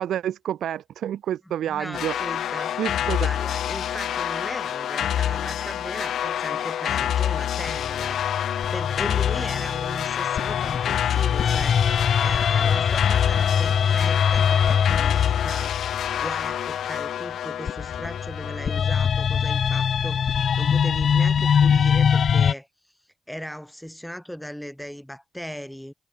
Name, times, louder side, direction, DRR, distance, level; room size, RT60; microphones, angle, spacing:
voice 1, 0.0-2.2 2.8-3.3, right 10 dB, 90° right, 4.7 m, -28 dB
voice 2, 1.7-2.8 3.2-23.0 23.3-25.9, equal, ahead, 4.3 m, -37 dB
sound 1, 1.9-18.8, left 10 dB, 85° left, 2.5 m, -27 dB
sound 2, 7.7-16.8 17.7-22.5, left 7 dB, 55° left, 1.5 m, -23 dB
cardioid pair, 125°, 0 cm